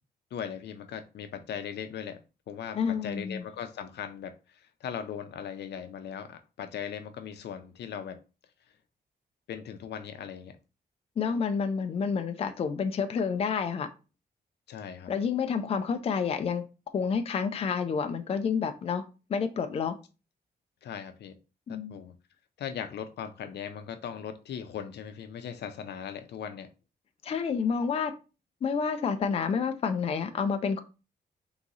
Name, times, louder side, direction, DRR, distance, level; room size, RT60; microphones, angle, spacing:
voice 1, 0.3-2.2 2.5-4.3 4.8-8.2 9.5-10.6 14.7-15.1 20.8-21.4 21.7-22.1 22.6-26.7, left 8 dB, 85° left, 0.6 m, -39 dB
voice 2, 2.7-3.5 11.2-13.9 15.1-16.6 16.9-19.0 19.3-19.9 21.7-22.0 27.2-28.1 28.6-30.8, left 6 dB, 35° left, 0.4 m, -29 dB
3.6 x 3.0 x 3.9 m
wide cardioid pair, 175°, 17 cm